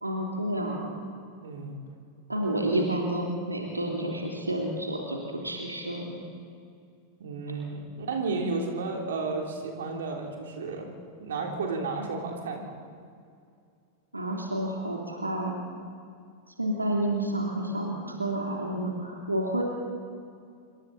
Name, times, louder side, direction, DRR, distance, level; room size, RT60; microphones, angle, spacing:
voice 1, 0.0-0.9 2.3-5.2 5.4-6.2 14.1-15.6 16.6-19.6, right 1 dB, 85° right, -1 dB, 3.1 m, -30 dB
voice 2, 1.4-1.8 2.7-2.9 7.2-10.9 11.2-12.7, right 3 dB, 60° right, 1 dB, 3.4 m, -32 dB
27.0 x 24.5 x 4.2 m, 2.3 s
figure-of-eight pair, 90°, 0 cm